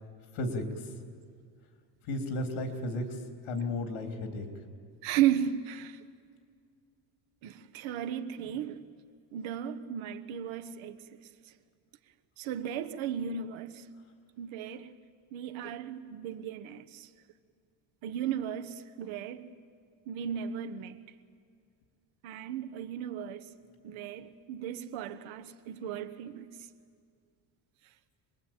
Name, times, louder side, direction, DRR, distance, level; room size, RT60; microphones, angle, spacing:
voice 1, 0.3-0.9 2.0-4.5 8.4-8.5 23.9-24.0, left 2 dB, 70° left, 3.5 m, -34 dB
voice 2, 5.0-6.0 7.4-8.8 9.3-11.0 12.4-13.9 14.4-14.9 15.3-17.1 18.0-19.5 20.1-21.0 22.2-23.5 23.8-26.5, right 9 dB, 75° right, 1.4 m, -35 dB
26.0 x 20.5 x 9.0 m
cardioid pair, 160°, 48 cm